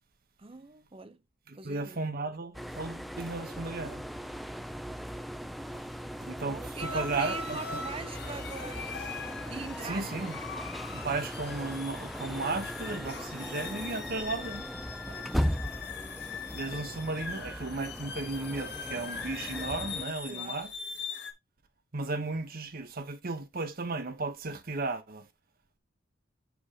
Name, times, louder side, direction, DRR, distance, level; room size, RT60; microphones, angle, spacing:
voice 1, 0.4-1.2 1.5-2.0 6.4-9.1 9.5-10.1 13.9-14.3 15.1-15.6 20.2-20.6, right 4 dB, 30° right, 0.7 m, -43 dB
voice 2, 1.5-4.0 6.2-7.6 9.8-10.4 10.9-14.6 16.5-20.7 21.9-25.3, right 3 dB, 50° right, 1.0 m, -35 dB
sound 1, 2.5-20.1, equal, ahead, 0.4 m, -38 dB
sound 2, 6.8-21.3, left 5 dB, 60° left, 1.2 m, -41 dB
6.6 x 4.7 x 3.6 m
head